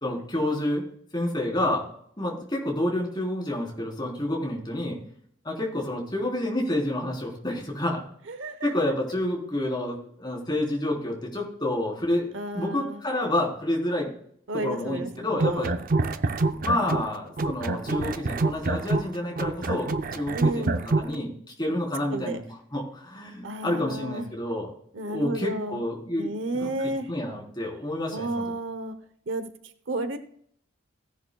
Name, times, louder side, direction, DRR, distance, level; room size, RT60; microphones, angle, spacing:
voice 1, 0.0-1.9 2.2-5.0 5.4-8.0 8.6-12.3 12.5-14.1 14.5-15.7 16.6-22.4 22.7-24.7 25.1-28.4, left 1 dB, 20° left, -2 dB, 3.8 m, -29 dB
voice 2, 8.3-8.9 12.3-13.0 14.5-15.8 20.3-20.8 21.7-21.8 22.1-22.4 23.4-24.3 24.9-25.8 26.2-27.1 28.1-28.9 29.3-29.5 29.9-30.2, right 2 dB, 65° right, 10 dB, 0.9 m, -32 dB
sound 1, 15.3-17.1 17.4-21.1, right 3 dB, 45° right, 0.5 m, -26 dB
16.5 x 10.5 x 2.3 m, 0.63 s
head